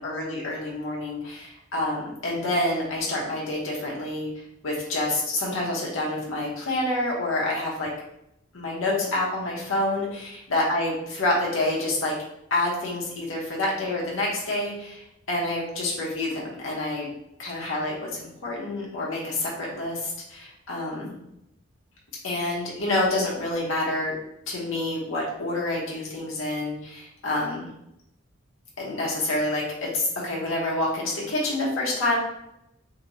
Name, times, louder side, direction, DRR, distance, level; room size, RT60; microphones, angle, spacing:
voice 1, 0.0-4.3 4.6-7.9 8.5-12.1 12.5-15.0 15.3-17.1 17.4-21.1 22.2-24.1 24.5-27.7 28.8-32.2, left 2 dB, 90° left, -4 dB, 0.9 m, -27 dB
2.8 x 2.7 x 2.9 m, 0.83 s
head